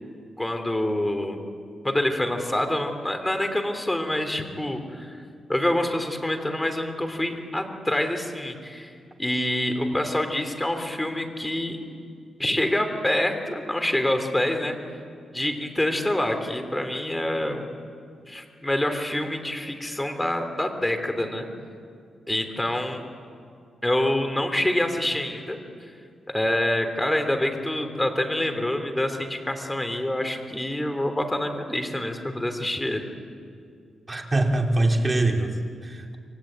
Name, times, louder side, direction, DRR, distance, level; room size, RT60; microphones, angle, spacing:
voice 1, 0.4-1.4 1.8-5.2 5.5-8.9 9.2-11.8 12.4-14.8 15.3-17.8 18.3-21.5 22.3-23.0 23.8-25.6 26.3-33.1, left 1 dB, 10° left, 6 dB, 3.3 m, -26 dB
voice 2, 34.1-36.2, right 2 dB, 20° right, 2 dB, 3.1 m, -23 dB
27.5 x 24.0 x 9.0 m, 2.3 s
cardioid pair, 110°, 0 cm